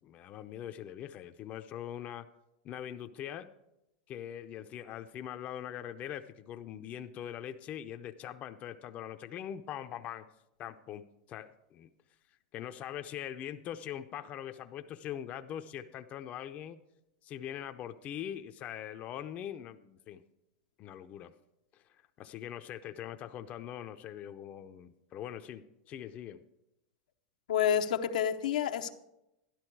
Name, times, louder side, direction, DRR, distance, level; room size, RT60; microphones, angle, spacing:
voice 1, 0.0-2.3 2.6-3.5 4.1-10.2 10.6-11.9 12.5-16.8 17.2-20.2 20.8-21.3 21.7-21.8 22.2-26.4, left 10 dB, 35° left, 8 dB, 0.6 m, -42 dB
voice 2, 27.5-28.9, left 9 dB, 90° left, 6 dB, 0.8 m, -29 dB
12.0 x 11.5 x 4.6 m, 0.89 s
supercardioid pair, 125°, 4 cm